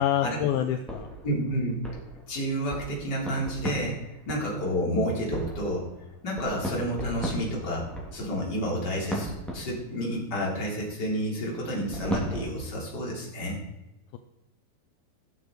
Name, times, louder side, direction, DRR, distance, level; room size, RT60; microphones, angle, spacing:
voice 1, 0.0-1.1, left 10 dB, 80° left, 7 dB, 2.2 m, -26 dB
sound 1, 0.9-4.6 5.3-10.1 11.9-12.5, equal, ahead, 1.9 m, -36 dB
voice 2, 1.2-1.8 2.3-5.8 6.2-7.9 8.1-13.6, equal, 25° left, -2 dB, 3.7 m, -30 dB
17.5 x 7.2 x 4.7 m, 0.95 s
omnidirectional pair, 4.9 m